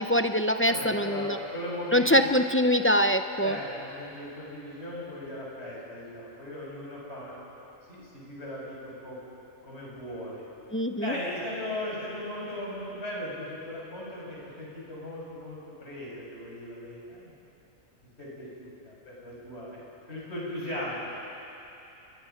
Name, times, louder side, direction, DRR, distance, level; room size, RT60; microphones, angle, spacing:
voice 1, 0.0-1.4 1.9-3.5 10.7-11.1, equal, 15° left, 7 dB, 0.4 m, -23 dB
voice 2, 0.7-2.3 3.4-7.3 7.9-9.2 9.6-10.4 11.0-17.3 18.2-19.8 20.1-21.1, left 1 dB, 50° left, -5 dB, 7.1 m, -38 dB
29.5 x 22.5 x 5.9 m, 2.9 s
omnidirectional pair, 1.4 m